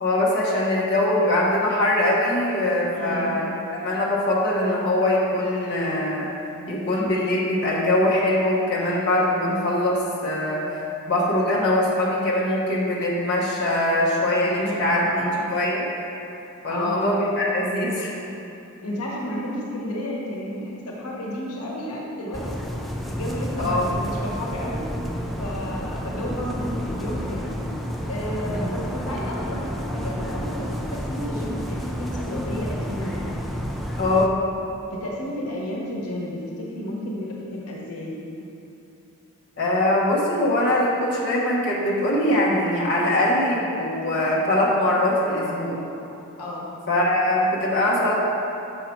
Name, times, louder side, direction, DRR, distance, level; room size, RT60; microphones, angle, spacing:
voice 1, 0.0-3.6 3.8-6.3 6.7-10.8 11.1-15.9 16.6-18.1 23.6-23.9 28.5-28.7 34.0-34.3 39.6-45.8 46.9-48.1, left 1 dB, 50° left, -6 dB, 1.1 m, -22 dB
voice 2, 2.9-3.4 14.2-15.4 16.7-17.1 18.8-22.5 23.1-24.8 25.4-27.5 28.1-33.4 34.9-38.2 46.4-46.7, left 1 dB, 90° left, -4 dB, 1.2 m, -32 dB
sound 1, 22.3-34.3, equal, ahead, 0.3 m, -30 dB
6.4 x 5.6 x 4.5 m, 2.8 s
head